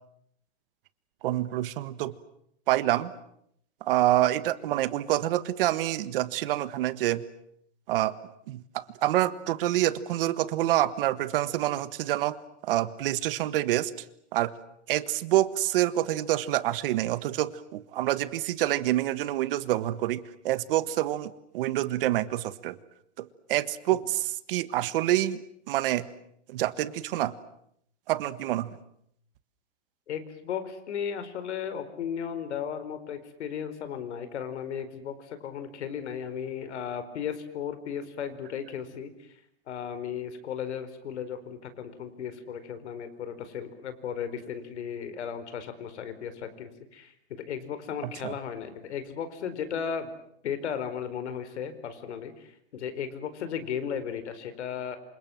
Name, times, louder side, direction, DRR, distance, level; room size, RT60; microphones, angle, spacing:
voice 1, 1.2-2.1 2.7-3.1 3.9-7.2 7.9-8.1 8.5-12.4 12.6-13.9 14.3-14.5 14.9-22.8 23.2-24.2 24.5-25.4 25.7-26.1 26.5-27.3 28.1-28.8 48.2-48.3, right 14 dB, 55° right, 15 dB, 1.5 m, -27 dB
voice 2, 30.1-39.4 39.7-50.1 50.4-55.0, left 8 dB, 80° left, 11 dB, 4.5 m, -35 dB
27.5 x 26.5 x 7.8 m, 0.73 s
supercardioid pair, 160°, 34 cm